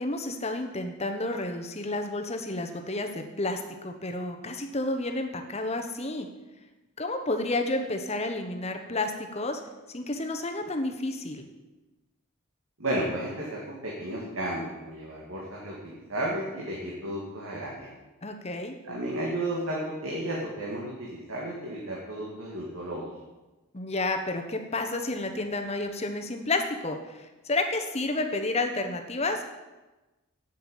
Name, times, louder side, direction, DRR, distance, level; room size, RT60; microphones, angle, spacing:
voice 1, 0.0-6.3 7.0-9.6 9.9-11.4 18.2-18.8 23.7-29.4, left 2 dB, 30° left, 5 dB, 1.1 m, -31 dB
voice 2, 12.8-17.9 18.8-23.1, right 1 dB, 70° right, -4 dB, 2.3 m, -33 dB
8.2 x 7.9 x 9.0 m, 1.1 s
head